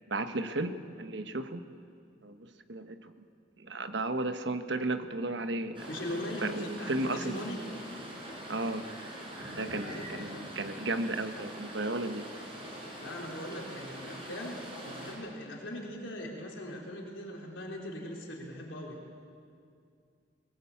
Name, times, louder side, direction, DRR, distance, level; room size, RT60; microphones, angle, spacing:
voice 1, 0.1-1.6 2.2-3.2 3.6-5.9 6.4-7.4 8.5-8.9 9.4-12.3, right 2 dB, 65° right, 8 dB, 1.2 m, -34 dB
sound 1, 5.7-15.1, right 1 dB, 25° right, 6.3 m, -44 dB
voice 2, 5.9-7.6 9.5-10.5 13.0-19.0, left 1 dB, 80° left, -1 dB, 4.0 m, -40 dB
22.0 x 19.0 x 8.5 m, 2.3 s
head